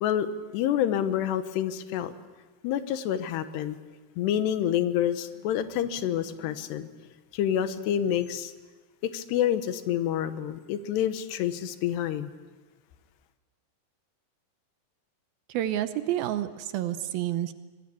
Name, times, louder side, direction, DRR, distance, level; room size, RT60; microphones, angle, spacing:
voice 1, 0.5-2.1 2.6-3.8 4.2-6.9 7.3-8.5 9.0-12.3, left 10 dB, 85° left, 11 dB, 3.2 m, -28 dB
voice 2, 15.5-17.5, right 12 dB, 75° right, 11 dB, 2.5 m, -29 dB
25.5 x 19.5 x 8.4 m, 1.3 s
omnidirectional pair, 4.7 m